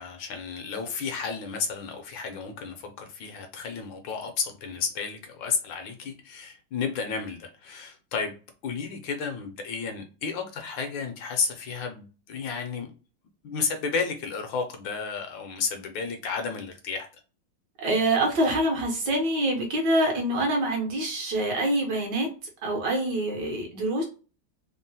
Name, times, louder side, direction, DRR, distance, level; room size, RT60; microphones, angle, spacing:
voice 1, 0.0-8.3 8.6-12.9 13.4-17.1, left 5 dB, 75° left, 1.2 m, -32 dB
voice 2, 17.8-22.3 22.6-24.0, right 1 dB, 65° right, 1.3 m, -25 dB
3.6 x 2.1 x 2.6 m
omnidirectional pair, 2.2 m